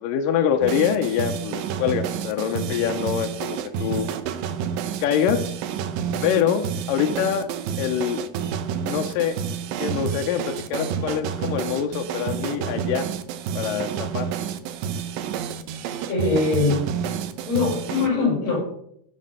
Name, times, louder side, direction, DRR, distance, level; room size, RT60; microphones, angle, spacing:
voice 1, 0.0-4.1 5.0-5.6 6.2-7.5 7.8-8.2 8.8-9.4 9.8-13.1 13.6-14.3, left 8 dB, 75° left, 7 dB, 2.0 m, -25 dB
sound 1, 0.6-18.1, right 8 dB, 75° right, 2.3 m, -29 dB
voice 2, 16.1-16.9 17.5-18.6, left 3 dB, 40° left, -2 dB, 7.1 m, -22 dB
15.0 x 6.2 x 5.5 m, 0.71 s
omnidirectional pair, 4.6 m